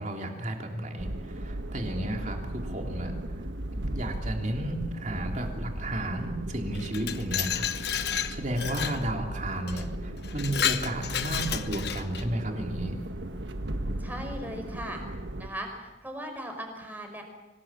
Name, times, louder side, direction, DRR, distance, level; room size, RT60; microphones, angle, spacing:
voice 1, 0.0-3.1 3.9-7.7 8.1-13.0, right 1 dB, 40° right, 3 dB, 3.3 m, -33 dB
sound 1, 1.0-15.5, right 1 dB, 85° right, 1.5 m, -36 dB
Glass, 6.7-9.0 9.7-9.8 10.2-12.3, left 9 dB, 60° left, 1.1 m, -31 dB
voice 2, 14.0-15.0 15.4-17.2, equal, 10° right, 3 dB, 5.1 m, -38 dB
25.5 x 19.0 x 7.6 m, 1.1 s
head